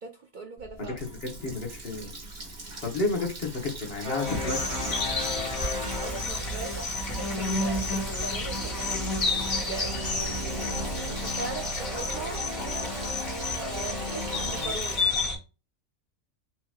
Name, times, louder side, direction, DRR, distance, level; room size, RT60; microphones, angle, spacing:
voice 1, 0.0-1.0 5.7-9.1 9.6-12.9 13.5-15.0, right 4 dB, 65° right, 4 dB, 0.4 m, -40 dB
Water tap faucet, 0.6-15.0, right 2 dB, 45° right, 1.5 m, -42 dB
voice 2, 0.8-2.1 2.8-5.0, left 3 dB, 50° left, 2 dB, 1.3 m, -31 dB
sound 1, 4.0-6.7 8.4-14.7, left 1 dB, 90° right, 2.7 m, -36 dB
soundscape forest, 4.2-15.4, left 3 dB, 75° left, 1.6 m, -31 dB
5.8 x 2.9 x 2.4 m, 0.30 s
omnidirectional pair, 1.4 m